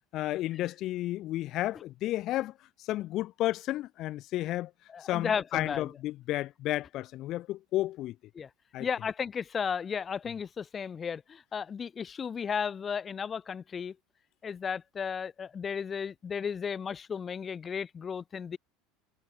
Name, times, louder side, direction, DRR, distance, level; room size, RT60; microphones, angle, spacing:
voice 1, 0.1-2.5 2.8-4.7 5.0-8.2 8.7-8.9, left 15 dB, 55° left, 1.8 m, -32 dB
voice 2, 4.9-5.9 8.4-8.5 8.8-13.9 14.4-18.6, left 6 dB, 30° left, 5.7 m, -34 dB
hypercardioid pair, 85°, 0 cm